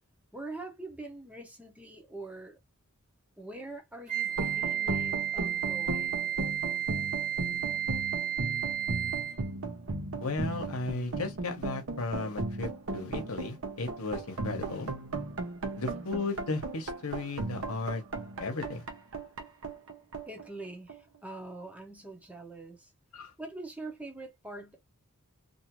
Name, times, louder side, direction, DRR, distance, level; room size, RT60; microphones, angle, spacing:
voice 1, 0.3-2.6 3.4-6.3 15.8-16.1 20.3-22.9 23.4-24.8, right 2 dB, 5° right, 0.7 m, -44 dB
Wind instrument woodwind instrument, 4.1-9.5, right 10 dB, 35° right, 1.0 m, -32 dB
sound 1, 4.3-21.2, right 2 dB, 65° right, 0.7 m, -36 dB
voice 2, 10.2-14.9 15.8-18.0 18.4-18.8 23.1-23.3, left 3 dB, 70° left, 0.9 m, -35 dB
2.6 x 2.4 x 2.9 m
head